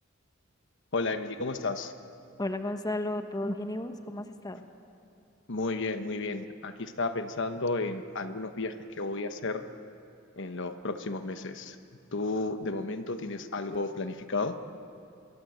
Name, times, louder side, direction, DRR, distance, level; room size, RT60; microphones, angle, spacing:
voice 1, 0.9-1.9 5.5-9.6 10.4-11.8 12.1-14.5, left 3 dB, 65° left, 8 dB, 1.1 m, -32 dB
voice 2, 2.4-4.7, left 1 dB, 20° left, 7 dB, 1.2 m, -33 dB
24.5 x 22.5 x 8.0 m, 2.5 s
head